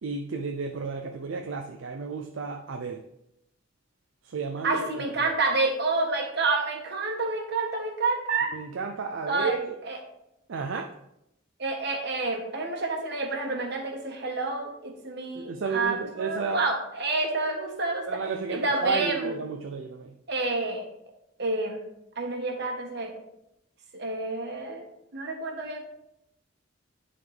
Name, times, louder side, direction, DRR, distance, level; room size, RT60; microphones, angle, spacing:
voice 1, 0.0-3.0 4.2-5.3 8.5-9.8 10.5-10.9 15.3-16.6 18.1-20.1, right 4 dB, 75° right, 0.5 m, -32 dB
voice 2, 4.6-8.5 9.3-9.6 9.8-10.0 11.6-18.2 18.5-19.4 20.3-20.8 21.4-21.8 22.2-23.1 23.9-24.8 25.1-25.9, right 3 dB, 55° right, 1.4 m, -29 dB
10.5 x 4.2 x 3.4 m
head